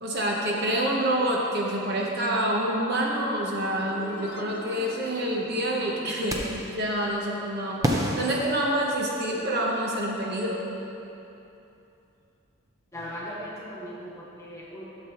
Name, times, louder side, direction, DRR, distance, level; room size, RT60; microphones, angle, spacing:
voice 1, 0.0-10.7, right 1 dB, 50° right, -2 dB, 1.0 m, -27 dB
sound 1, 3.6-6.4, left 5 dB, 50° left, 0.4 m, -43 dB
sound 2, 6.3-6.8 7.8-9.3, equal, 15° right, 0.6 m, -29 dB
voice 2, 12.9-14.9, equal, 15° left, -6 dB, 1.5 m, -38 dB
12.0 x 6.9 x 3.0 m, 2.9 s
head